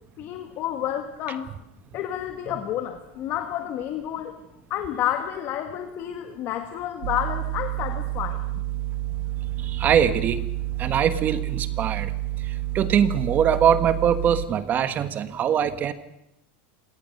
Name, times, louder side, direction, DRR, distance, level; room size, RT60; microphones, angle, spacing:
voice 1, 0.2-1.5 1.9-4.3 4.7-8.4, left 11 dB, 35° left, 7 dB, 1.5 m, -30 dB
sound 1, 7.0-14.5, right 16 dB, 65° right, 1.1 m, -29 dB
voice 2, 9.6-10.4 10.8-12.1 12.4-15.9, right 8 dB, 25° right, 13 dB, 1.3 m, -22 dB
26.0 x 18.5 x 6.6 m, 0.85 s
supercardioid pair, 160°, 7 cm